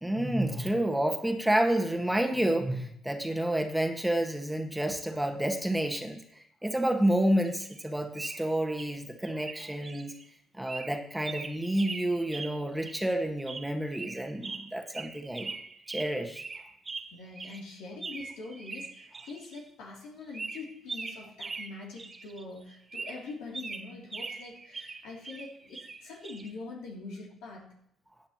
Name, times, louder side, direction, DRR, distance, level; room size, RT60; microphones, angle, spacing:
voice 1, 0.0-10.2 10.5-15.6 15.9-16.4, right 1 dB, 5° right, 4 dB, 1.6 m, -29 dB
sound 1, 7.5-7.9 8.1-9.0 9.2-10.3 10.7-13.1 13.5-17.6 18.0-19.6 20.3-22.4 22.7-26.5, right 4 dB, 35° right, 1.1 m, -42 dB
voice 2, 17.1-27.8, left 3 dB, 75° left, -1 dB, 3.0 m, -44 dB
15.0 x 9.4 x 3.0 m, 0.73 s
hypercardioid pair, 55°, 0 cm